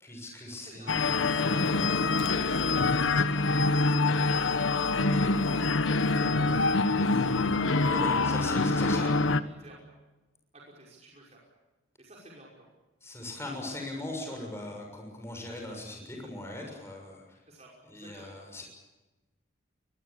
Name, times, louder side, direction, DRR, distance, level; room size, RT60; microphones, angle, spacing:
voice 1, 0.0-1.2 7.9-9.0 13.0-17.4 17.9-18.6, left 1 dB, 15° left, 0 dB, 6.6 m, -39 dB
voice 2, 0.6-1.5 2.1-3.3 4.0-7.6 8.2-8.3 8.6-9.8 10.5-11.4 12.0-12.5 17.5-18.3, right 1 dB, 35° right, -3 dB, 5.6 m, -50 dB
sound 1, 0.9-9.4, left 3 dB, 80° left, 1.1 m, -25 dB
24.5 x 22.0 x 8.6 m, 1.1 s
head